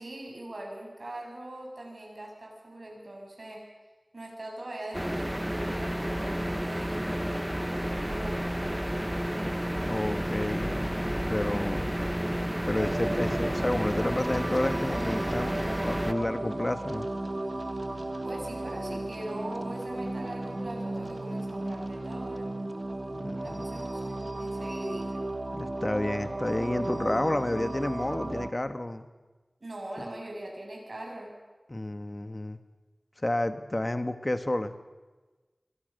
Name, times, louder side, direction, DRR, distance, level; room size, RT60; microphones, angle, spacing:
voice 1, 0.0-3.7 4.1-9.0 18.2-22.5 23.4-25.2 29.6-31.3, right 1 dB, 80° right, 0 dB, 7.9 m, -41 dB
sound 1, 4.9-16.1, equal, 10° right, 1.4 m, -31 dB
voice 2, 9.8-10.9 11.3-11.9 12.7-15.5 15.8-17.1 23.1-23.8 25.5-29.1 31.7-32.6 33.2-34.8, left 1 dB, 35° left, 10 dB, 1.6 m, -30 dB
sound 2, 12.8-28.5, right 2 dB, 55° right, 1.7 m, -35 dB
27.5 x 25.0 x 6.8 m, 1.2 s
wide cardioid pair, 55°, 0 cm